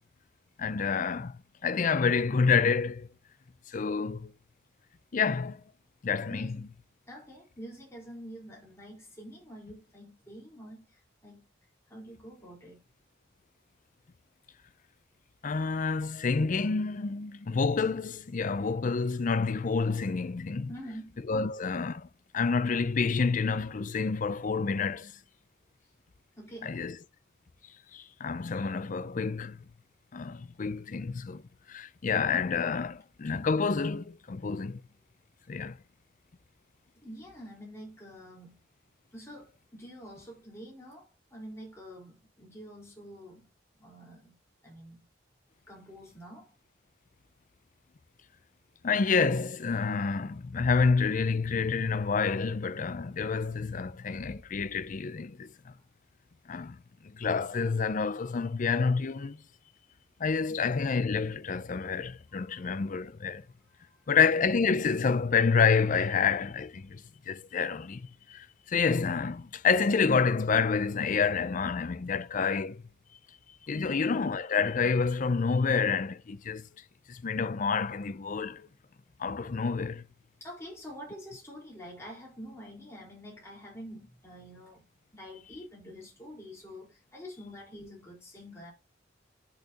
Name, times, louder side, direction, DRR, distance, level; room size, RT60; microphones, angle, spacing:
voice 1, 0.6-3.1 3.7-4.3 5.1-5.6 6.0-6.6 15.4-20.7 21.3-22.1 22.3-25.1 26.6-27.0 27.9-29.6 30.1-31.4 31.7-34.8 35.5-35.8 48.8-55.7 56.5-56.8 57.0-59.4 60.2-63.4 64.1-72.8 73.7-76.7 77.1-78.7 79.2-80.1, left 5 dB, 45° left, 0.5 m, -28 dB
voice 2, 7.1-11.4 11.9-12.8 20.7-21.2 25.8-25.9 26.4-26.8 37.0-38.6 39.1-43.4 43.8-44.4 44.6-45.0 45.7-46.5 60.5-60.6 62.5-62.6 63.6-64.1 73.8-74.1 80.4-84.8 85.1-88.7, equal, 15° left, 4.3 m, -47 dB
10.5 x 6.5 x 2.8 m
head